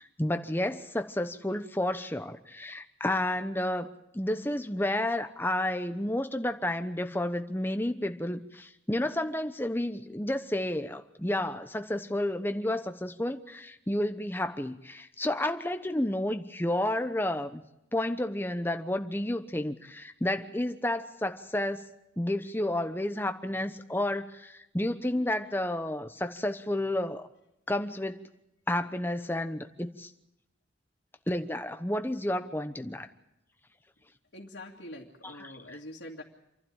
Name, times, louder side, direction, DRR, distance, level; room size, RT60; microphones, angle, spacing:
voice 1, 0.0-17.6 17.9-21.9 22.2-27.3 27.7-28.3 28.7-30.1 31.3-33.1 35.4-35.8, left 1 dB, 10° left, 8 dB, 1.0 m, -31 dB
voice 2, 34.3-36.2, left 1 dB, 75° left, -4 dB, 2.3 m, -44 dB
28.0 x 12.0 x 8.8 m, 0.87 s
head